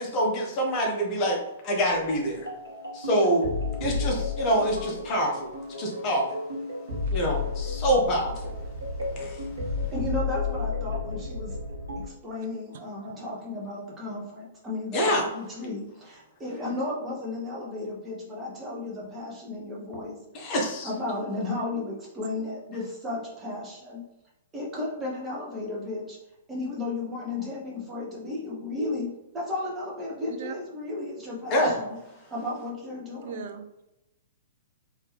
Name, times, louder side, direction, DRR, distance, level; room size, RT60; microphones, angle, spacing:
voice 1, 0.0-1.4 1.6-2.5 2.9-3.5 3.8-5.5 5.8-6.3 7.1-8.5 9.2-9.4 14.9-15.3 20.3-20.9 31.5-31.7, equal, 30° left, 0 dB, 1.1 m, -25 dB
sound 1, 1.9-12.1, left 4 dB, 75° right, 1.4 m, -32 dB
voice 2, 9.9-11.6 12.0-20.2 20.8-24.0 24.5-26.2 26.5-32.0 32.3-33.4, left 2 dB, 15° right, -4 dB, 1.2 m, -34 dB
voice 3, 13.0-13.3 30.4-30.5 31.6-31.7 33.2-33.7, right 7 dB, 50° right, 6 dB, 0.5 m, -38 dB
3.6 x 2.9 x 3.2 m, 0.91 s
figure-of-eight pair, 110°, 0 cm